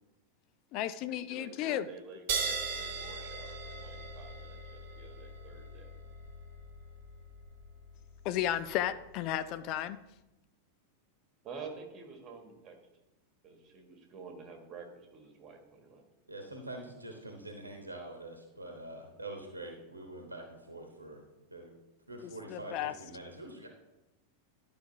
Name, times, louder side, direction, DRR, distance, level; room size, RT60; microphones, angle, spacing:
voice 1, 0.7-1.9 8.2-10.0 22.2-22.9, left 11 dB, 40° left, 12 dB, 0.4 m, -33 dB
voice 2, 1.3-5.9 11.4-12.7 13.4-16.0, right 4 dB, 30° right, 3 dB, 1.6 m, -49 dB
sound 1, 2.3-9.3, right 4 dB, 50° right, 1.2 m, -40 dB
voice 3, 16.3-21.2 21.5-21.8 22.1-22.7 23.0-23.7, right 2 dB, 80° right, 2 dB, 1.0 m, -45 dB
11.0 x 5.1 x 2.8 m, 0.94 s
figure-of-eight pair, 90°, 0 cm